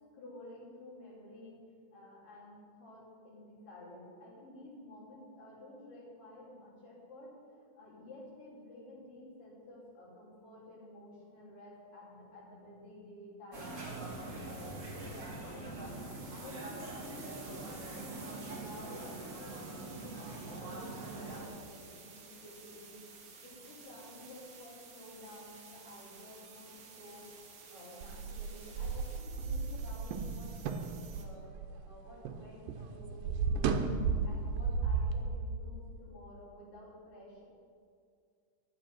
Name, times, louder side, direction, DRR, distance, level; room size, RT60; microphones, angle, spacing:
voice 1, 0.1-1.6 1.9-7.3 7.8-16.0 16.4-23.0 23.4-31.5 31.8-37.4, left 1 dB, 75° left, -7 dB, 5.2 m, -52 dB
sound 1, 13.5-21.5, right 2 dB, 35° right, 1.4 m, -43 dB
sound 2, 17.0-31.2, right 5 dB, 55° right, 1.2 m, -54 dB
sound 3, 28.0-32.4 32.7-35.2, right 5 dB, 85° right, 2.4 m, -34 dB
11.5 x 9.3 x 5.9 m, 2.2 s
omnidirectional pair, 4.0 m